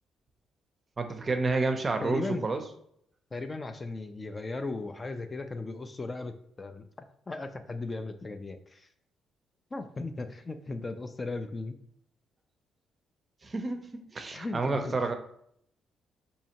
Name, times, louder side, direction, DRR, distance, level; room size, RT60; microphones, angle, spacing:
voice 1, 1.0-2.6 13.4-15.1, right 3 dB, 30° right, 6 dB, 0.5 m, -30 dB
voice 2, 2.0-2.4 3.3-6.8 7.3-8.9 9.7-11.8 14.3-14.9, left 3 dB, 25° left, 8 dB, 0.3 m, -37 dB
4.1 x 2.7 x 2.8 m, 0.70 s
cardioid pair, 90°, 0 cm